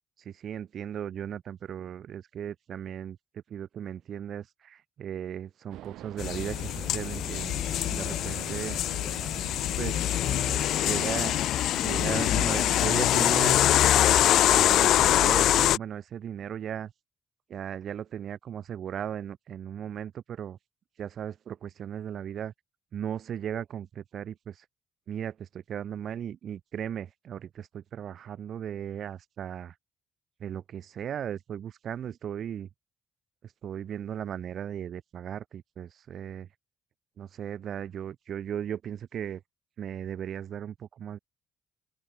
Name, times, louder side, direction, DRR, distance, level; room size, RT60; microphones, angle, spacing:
voice 1, 0.2-3.2 3.5-8.8 9.8-11.4 11.7-13.6 14.1-14.2 14.5-16.9 17.5-20.6 21.0-22.5 22.9-24.6 25.1-29.7 30.4-32.7 33.6-36.5 37.2-39.4 39.8-41.2, right 9 dB, 65° right, 4.9 m, -37 dB
sound 1, 5.7-11.3, right 15 dB, 90° right, 5.3 m, -45 dB
sound 2, 6.2-15.8, left 12 dB, 80° left, 0.5 m, -24 dB
open air
cardioid pair, 90°, 0 cm